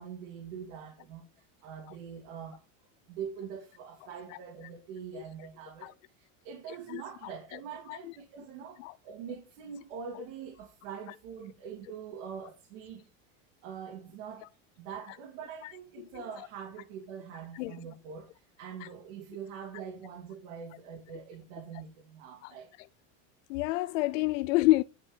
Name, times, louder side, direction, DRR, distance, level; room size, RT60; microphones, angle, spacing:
voice 1, 0.0-2.6 3.1-13.0 13.6-14.5 14.8-22.7, right 7 dB, 70° right, 2.3 m, -44 dB
voice 2, 23.5-24.8, left 18 dB, 90° left, 0.5 m, -27 dB
10.5 x 4.5 x 5.0 m
supercardioid pair, 160°, 37 cm